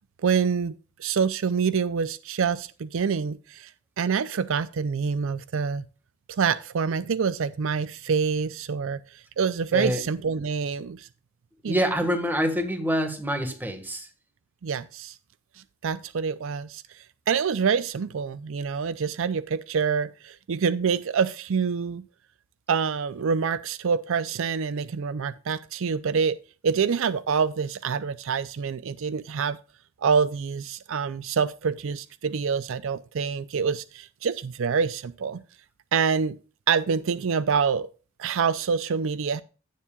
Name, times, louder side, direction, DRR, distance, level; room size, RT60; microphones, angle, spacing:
voice 1, 0.2-3.7 4.0-5.8 6.3-11.1 11.6-11.8 14.6-15.1 15.8-22.0 22.7-26.4 26.6-29.6 30.0-35.4 35.9-36.4 36.7-37.9 38.2-39.4, right 6 dB, 65° right, 0.5 m, -26 dB
voice 2, 11.6-14.1, equal, 10° right, 1.6 m, -26 dB
16.5 x 7.3 x 2.3 m
head